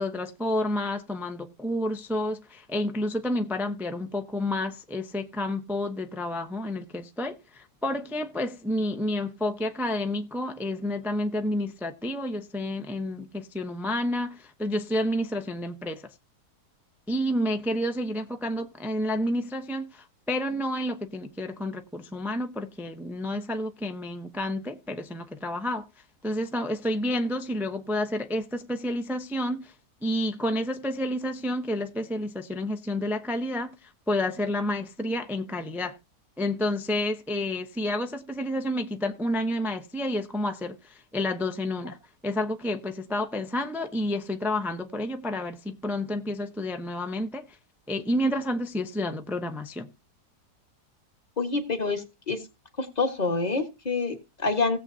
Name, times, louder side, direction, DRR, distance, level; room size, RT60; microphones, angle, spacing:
voice 1, 0.0-16.0 17.1-25.9 26.2-29.7 30.0-36.0 36.4-42.0 42.2-47.5 47.9-49.9, left 1 dB, ahead, 0.5 m, -30 dB
voice 2, 51.4-52.5 52.8-54.8, left 4 dB, 25° left, 1.5 m, -27 dB
18.0 x 7.7 x 2.7 m
omnidirectional pair, 1.7 m